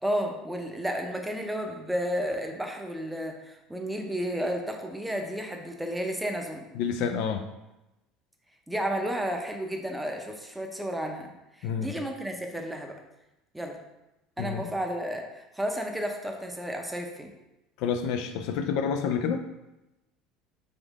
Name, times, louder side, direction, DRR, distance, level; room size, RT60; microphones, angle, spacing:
voice 1, 0.0-6.7 8.7-13.0 13.5-13.8 14.4-17.3, equal, 5° right, 3 dB, 0.6 m, -32 dB
voice 2, 6.7-7.5 11.6-11.9 14.4-14.6 17.8-19.4, left 6 dB, 70° left, 6 dB, 0.4 m, -28 dB
3.6 x 3.5 x 3.5 m, 0.96 s
supercardioid pair, 95°, 0 cm